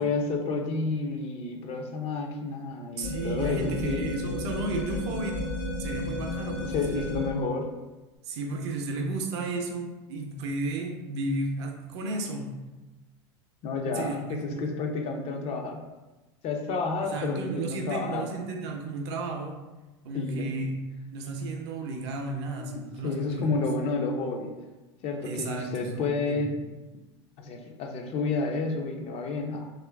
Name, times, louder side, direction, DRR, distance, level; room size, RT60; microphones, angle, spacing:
voice 1, 0.0-4.1 6.6-7.7 13.6-15.8 16.4-18.3 20.1-20.6 22.6-24.6 25.0-26.6 27.4-29.7, left 3 dB, 45° left, 3 dB, 0.4 m, -30 dB
sound 1, 3.0-7.5, left 2 dB, 60° left, 0.9 m, -33 dB
voice 2, 3.0-7.1 8.2-12.6 13.8-14.7 17.0-19.6 20.0-20.7 21.1-23.7 25.2-26.4, right 2 dB, 65° right, 2 dB, 0.5 m, -33 dB
3.0 x 2.4 x 2.2 m, 1.1 s
hypercardioid pair, 90°, 15 cm